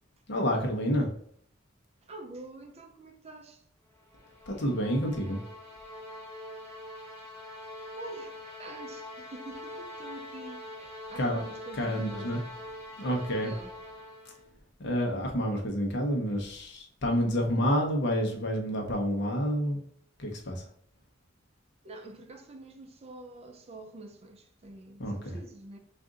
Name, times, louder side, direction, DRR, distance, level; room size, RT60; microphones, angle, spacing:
voice 1, 0.3-1.1 4.5-5.4 11.1-11.5 11.7-12.4 13.0-13.5 14.8-19.8 20.2-20.7 25.0-25.4, equal, 60° left, 0.9 m, -29 dB
voice 2, 2.0-3.6 8.0-10.7 11.0-12.4 12.9-13.0 13.4-13.7 21.8-25.8, right 2 dB, 30° right, 0.5 m, -46 dB
sound 1, 3.9-14.5, left 1 dB, 15° left, 1.0 m, -44 dB
3.6 x 2.6 x 3.8 m
head